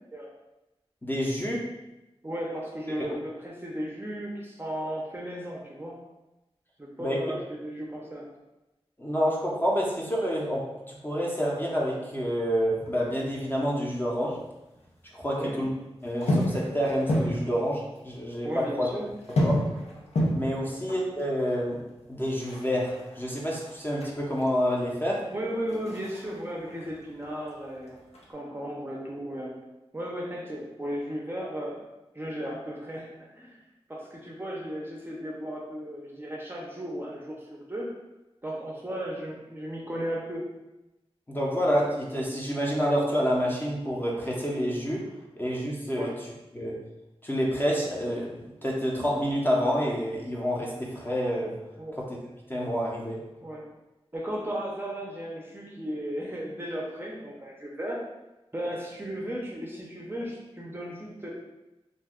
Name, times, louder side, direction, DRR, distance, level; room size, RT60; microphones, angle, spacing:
voice 1, 1.0-1.6 3.0-3.1 7.0-7.2 9.0-10.6 11.0-14.3 15.1-15.7 16.0-18.9 19.4-19.6 20.3-21.8 22.1-22.9 23.2-25.2 41.3-45.0 45.4-46.1 46.5-46.7 47.2-48.3 48.6-51.5 52.5-53.2, equal, 20° left, -3 dB, 0.6 m, -28 dB
voice 2, 2.2-6.0 6.8-8.3 15.3-15.5 18.4-19.1 20.6-20.8 25.3-27.9 28.3-29.5 29.9-31.9 32.1-33.6 33.9-37.9 38.4-40.5 45.9-46.2 51.8-52.0 53.4-53.6 54.1-58.0 58.5-61.3, equal, 20° right, -3 dB, 0.5 m, -35 dB
sound 1, 12.7-14.4 14.6-15.6 16.0-18.0 18.3-18.4 18.7-24.5 24.9-27.5 27.8-28.3, left 1 dB, 85° left, 0.6 m, -31 dB
2.5 x 2.2 x 3.5 m, 0.98 s
wide cardioid pair, 90°, 10 cm